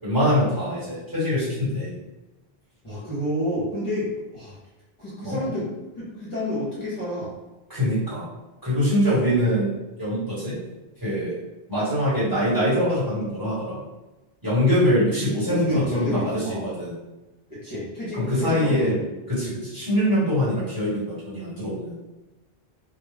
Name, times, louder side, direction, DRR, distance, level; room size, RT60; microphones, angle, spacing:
voice 1, 0.0-1.9 5.2-5.4 7.7-8.3 8.6-9.7 10.0-10.5 11.0-11.4 11.7-13.8 14.4-16.9 18.2-19.0 19.3-21.9, equal, 20° right, -11 dB, 1.2 m, -23 dB
voice 2, 2.8-4.6 5.0-5.7 6.0-7.3 15.4-16.6 17.5-19.1, equal, 35° left, -10 dB, 0.8 m, -29 dB
2.3 x 2.2 x 3.3 m, 1.1 s
omnidirectional pair, 1.0 m